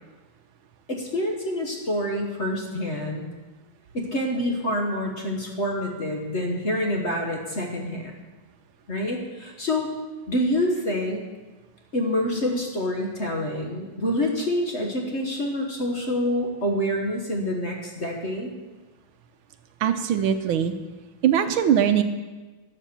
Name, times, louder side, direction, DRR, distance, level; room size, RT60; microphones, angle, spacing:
voice 1, 0.9-3.3 3.9-8.1 8.9-9.9 10.3-11.2 11.9-18.5, left 1 dB, 40° left, 1 dB, 1.3 m, -27 dB
voice 2, 19.8-20.7 21.2-22.0, right 9 dB, 75° right, 8 dB, 1.4 m, -21 dB
12.0 x 7.4 x 6.8 m, 1.3 s
omnidirectional pair, 2.4 m